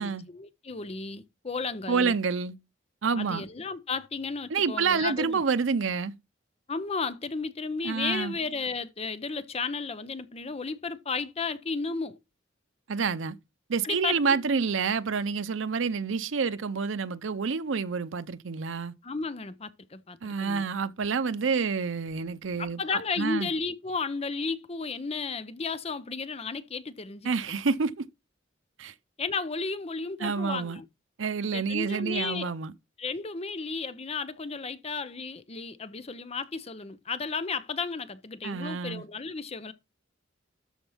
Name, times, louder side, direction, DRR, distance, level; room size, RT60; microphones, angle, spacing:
voice 1, 0.0-2.1 3.1-5.4 6.7-12.2 13.8-14.4 19.0-20.7 22.6-27.6 29.2-30.8 31.5-32.5 33.0-39.7, left 4 dB, 30° left, 0.7 m, -33 dB
voice 2, 1.9-2.6 3.0-3.4 4.5-6.1 7.8-8.4 12.9-13.4 13.7-18.9 20.2-23.5 27.3-28.1 28.8-28.9 30.2-30.8 31.2-32.7 38.4-39.0, right 5 dB, 85° right, 0.6 m, -28 dB
13.0 x 4.4 x 5.6 m
head